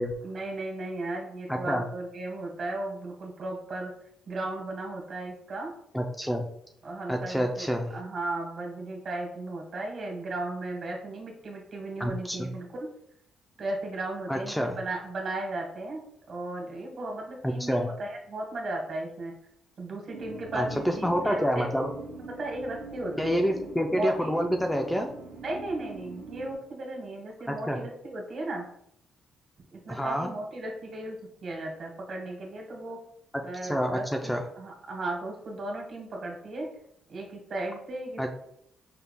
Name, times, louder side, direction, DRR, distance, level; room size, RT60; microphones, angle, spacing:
voice 1, 0.2-3.9 4.3-5.7 6.8-12.9 13.6-19.3 19.8-21.8 22.2-24.3 25.4-28.6 29.7-33.0 33.4-36.7 37.1-38.3, right 2 dB, 50° right, 0 dB, 1.5 m, -35 dB
voice 2, 1.5-1.8 5.9-6.5 7.1-7.9 12.0-12.5 14.3-14.8 17.7-17.9 20.5-21.9 23.2-25.1 27.7-27.8 29.9-30.3 33.6-34.0 34.3-34.4 38.2-38.3, equal, 5° left, 4 dB, 0.4 m, -27 dB
sound 1, 20.1-26.5, right 3 dB, 70° right, 0.9 m, -43 dB
5.8 x 3.4 x 2.2 m, 0.72 s
cardioid pair, 90°, 0 cm